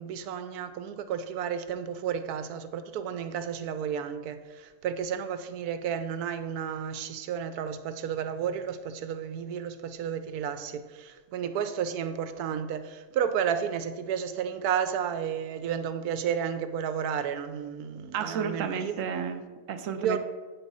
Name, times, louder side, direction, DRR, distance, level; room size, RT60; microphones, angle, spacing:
voice 1, 0.0-19.0 20.0-20.2, right 8 dB, 90° right, 10 dB, 1.1 m, -32 dB
voice 2, 18.1-20.2, right 6 dB, 70° right, 8 dB, 0.9 m, -32 dB
8.1 x 3.8 x 5.4 m, 1.4 s
omnidirectional pair, 1.6 m